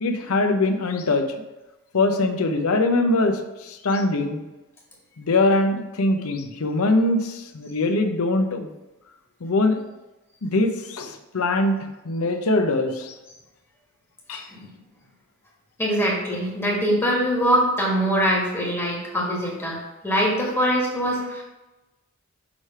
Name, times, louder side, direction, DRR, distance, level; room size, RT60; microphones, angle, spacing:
voice 1, 0.0-1.3 1.9-4.4 5.2-8.7 9.4-9.8 10.4-11.8 12.0-13.1 14.3-14.5, left 2 dB, 75° left, 6 dB, 0.7 m, -22 dB
voice 2, 14.3-14.6 15.8-19.8 20.0-21.4, equal, 10° left, -4 dB, 1.4 m, -23 dB
6.2 x 3.3 x 5.5 m, 1.1 s
head